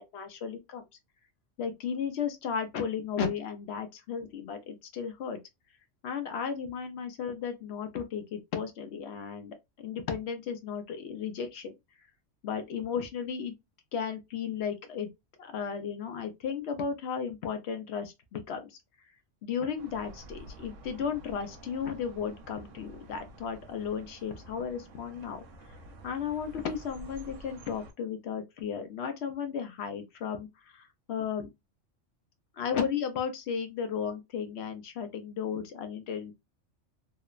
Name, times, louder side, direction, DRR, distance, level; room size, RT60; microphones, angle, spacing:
voice 1, 0.1-0.8 1.6-5.4 6.0-11.7 12.4-13.5 13.9-15.1 15.4-18.7 19.4-25.4 26.0-30.5 30.7-31.5 32.6-36.3, left 7 dB, 65° left, 0.8 m, -34 dB
sound 1, 19.8-27.9, right 1 dB, 80° right, 1.0 m, -49 dB
2.9 x 2.0 x 2.3 m
omnidirectional pair, 1.3 m